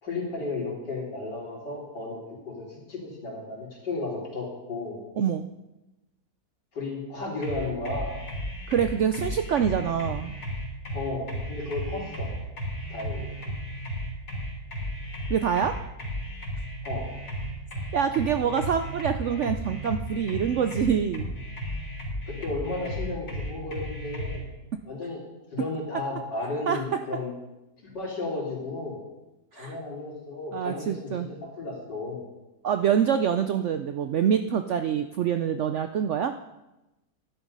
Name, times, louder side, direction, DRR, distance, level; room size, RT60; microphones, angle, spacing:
voice 1, 0.0-2.2 2.5-5.0 6.7-8.1 10.9-12.3 12.9-13.3 16.8-17.1 22.3-24.5 24.9-25.2 25.5-27.3 27.8-29.0 29.5-31.0 31.4-32.2, left 3 dB, 90° left, -2 dB, 3.8 m, -33 dB
voice 2, 5.2-5.5 8.7-10.4 15.3-15.8 17.9-21.3 26.7-26.8 29.5-29.8 30.5-31.3 32.6-36.3, right 8 dB, 75° right, 8 dB, 0.6 m, -25 dB
sound 1, 7.4-24.4, equal, 65° left, 3.5 m, -34 dB
12.0 x 10.5 x 5.4 m, 1.0 s
omnidirectional pair, 1.8 m